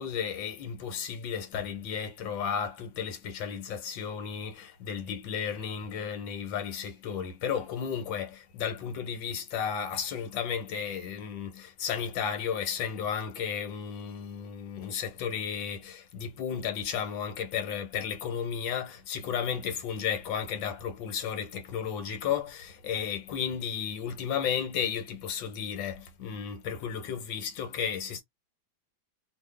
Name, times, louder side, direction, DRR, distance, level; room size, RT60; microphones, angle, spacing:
voice 1, 0.0-28.2, left 7 dB, 85° left, 1.7 m, -33 dB
2.9 x 2.7 x 3.4 m
omnidirectional pair, 2.0 m